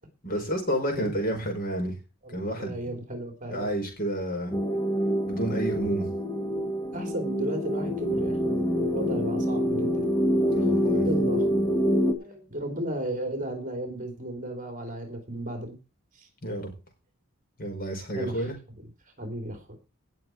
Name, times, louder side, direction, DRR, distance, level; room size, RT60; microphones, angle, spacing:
voice 1, 0.2-2.0 2.3-2.8 3.5-4.5 5.3-6.1 6.5-6.6 10.5-11.1 16.4-16.7 17.6-18.5, right 1 dB, 40° left, 3 dB, 5.0 m, -30 dB
voice 2, 2.2-3.7 6.9-10.0 11.0-11.5 12.1-15.8 16.1-16.3 18.2-18.5 19.2-19.8, right 1 dB, 35° right, 5 dB, 3.5 m, -34 dB
sound 1, 4.5-12.1, equal, 20° left, 1.6 m, -26 dB
18.5 x 6.7 x 4.6 m, 0.31 s
head